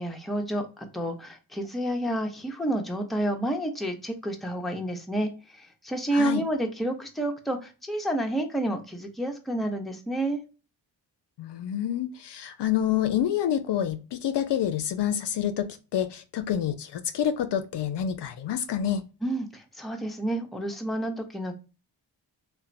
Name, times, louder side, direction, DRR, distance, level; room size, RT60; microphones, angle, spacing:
voice 1, 0.0-10.4 19.2-21.6, right 1 dB, ahead, 0.6 m, -30 dB
voice 2, 6.1-6.4 11.4-19.0, left 10 dB, 65° left, 0.5 m, -28 dB
2.8 x 2.1 x 2.4 m
cardioid pair, 55°, 46 cm